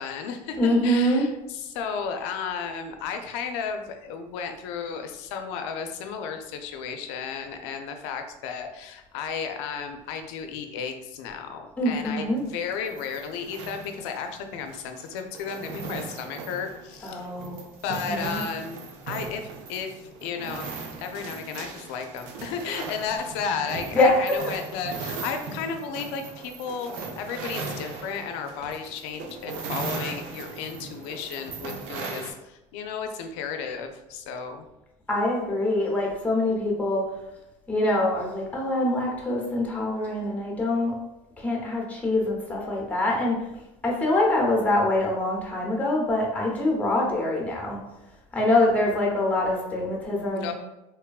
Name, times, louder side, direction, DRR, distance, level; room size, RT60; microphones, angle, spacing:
voice 1, 0.0-17.6 17.8-20.7 21.0-34.6 50.3-50.5, left 6 dB, 90° left, 6 dB, 0.4 m, -34 dB
voice 2, 0.6-1.3 11.8-12.4 17.0-18.4 23.9-24.1 24.4-24.5 35.1-37.1 37.7-41.0 41.4-43.4 43.8-47.8 48.3-50.5, left 1 dB, 10° left, -2 dB, 0.8 m, -24 dB
sound 1, 12.4-32.3, right 4 dB, 80° right, 0.5 m, -38 dB
3.3 x 2.1 x 2.3 m, 0.93 s
supercardioid pair, 115°, 14 cm